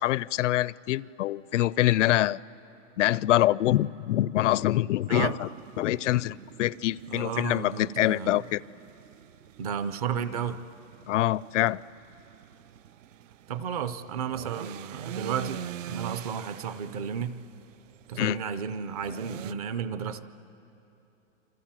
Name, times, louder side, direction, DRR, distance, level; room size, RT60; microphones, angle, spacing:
voice 1, 0.0-2.4 3.0-5.5 5.8-8.6 11.1-11.8 18.1-18.4, left 14 dB, 70° left, 22 dB, 0.5 m, -25 dB
sound 1, 5.4-19.5, right 10 dB, 75° right, 0.7 m, -45 dB
voice 2, 7.1-8.4 9.6-10.6 13.5-17.4 18.1-20.4, right 7 dB, 30° right, 13 dB, 0.6 m, -33 dB
28.0 x 25.5 x 7.4 m, 2.9 s
supercardioid pair, 175°, 38 cm